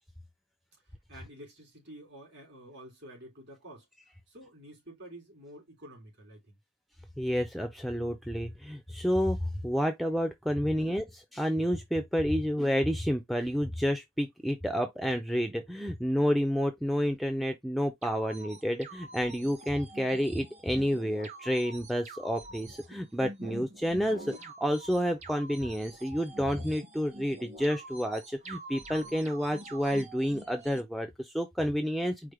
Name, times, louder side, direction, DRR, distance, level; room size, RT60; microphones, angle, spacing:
voice 1, 1.1-3.9 4.3-6.5 10.8-10.9 19.0-19.1, right 1 dB, 50° right, 3.1 m, -50 dB
voice 2, 7.2-32.3, equal, ahead, 0.4 m, -30 dB
sound 1, 18.0-30.8, right 2 dB, 30° right, 0.9 m, -46 dB
4.9 x 2.1 x 4.5 m
head